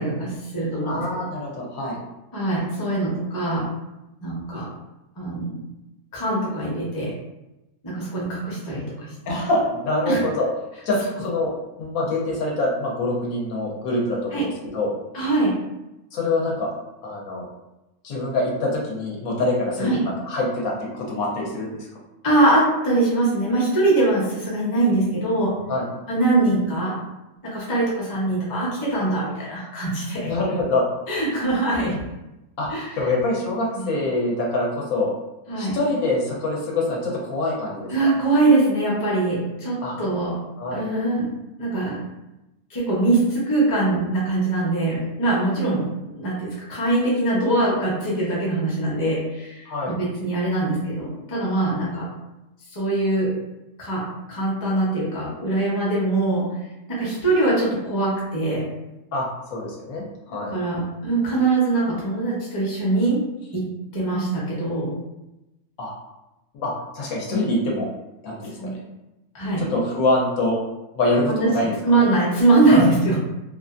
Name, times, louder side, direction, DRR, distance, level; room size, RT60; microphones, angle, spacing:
voice 1, 0.0-1.0 2.3-3.6 4.2-4.6 5.2-5.6 6.1-7.1 7.8-9.1 10.1-10.2 14.3-14.4 15.1-15.5 19.8-20.0 22.2-25.7 26.1-27.0 27.5-30.3 31.1-31.9 32.7-32.9 33.8-33.9 35.5-35.8 37.9-40.3 40.7-42.0 42.7-52.1 52.7-53.3 53.8-54.0 54.3-56.4 57.0-58.6 60.5-63.2 63.5-63.6 63.9-64.9 68.6-68.7 69.3-69.6 71.2-71.5 71.8-73.1, right 2 dB, 20° left, -6 dB, 0.5 m, -22 dB
voice 2, 0.8-2.0 9.3-10.5 10.8-11.5 11.8-14.4 14.7-14.9 16.1-16.7 17.0-17.5 18.0-21.9 25.7-25.9 30.2-30.8 32.6-32.7 33.0-35.1 35.6-38.1 39.8-39.9 40.6-40.8 49.7-49.9 59.1-60.6 65.8-65.9 66.5-67.9 68.2-68.8 69.6-70.6 71.0-72.1 72.7-72.9, left 2 dB, 75° left, -2 dB, 1.1 m, -25 dB
2.7 x 2.4 x 2.5 m, 0.97 s
omnidirectional pair, 1.5 m